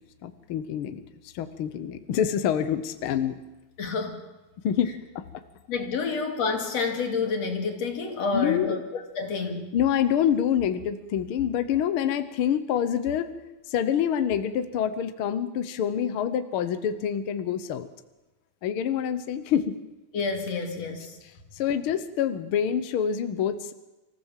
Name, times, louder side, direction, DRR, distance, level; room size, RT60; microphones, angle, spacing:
voice 1, 0.2-3.4 4.6-5.2 8.3-8.8 9.7-13.3 13.7-17.9 18.6-19.8 21.5-23.7, left 9 dB, 70° left, 11 dB, 1.3 m, -26 dB
voice 2, 3.8-4.2 5.7-8.8 9.2-9.7 20.1-21.2, left 4 dB, 55° left, 4 dB, 3.4 m, -29 dB
25.5 x 15.0 x 7.4 m, 1.1 s
omnidirectional pair, 3.6 m